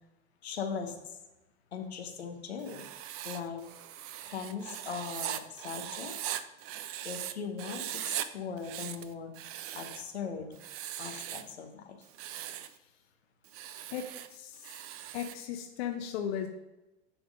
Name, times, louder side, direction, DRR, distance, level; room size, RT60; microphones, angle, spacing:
voice 1, 0.4-0.9 1.7-2.8 3.2-3.6 4.3-6.2 7.0-9.3 9.7-10.6 11.0-11.8, left 6 dB, 90° left, 4 dB, 1.0 m, -39 dB
Writing, 2.6-7.3 7.6-8.3 8.6-10.1 10.6-11.5 12.0-12.7 13.4-15.4, right 11 dB, 45° right, 0.6 m, -40 dB
voice 2, 13.9-14.7 15.1-16.5, left 8 dB, 70° left, 5 dB, 0.8 m, -36 dB
10.5 x 3.6 x 5.1 m, 1.0 s
hypercardioid pair, 80°, 32 cm